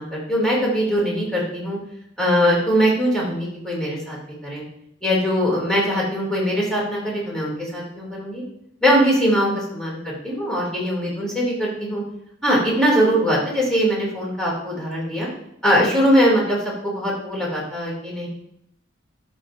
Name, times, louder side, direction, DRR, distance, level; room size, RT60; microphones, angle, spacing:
voice 1, 0.0-1.8 2.2-4.2 4.4-4.6 5.0-8.4 8.8-12.0 12.4-15.3 15.6-16.6 16.8-18.3, equal, 5° left, -6 dB, 2.9 m, -21 dB
11.5 x 6.9 x 2.7 m, 0.76 s
head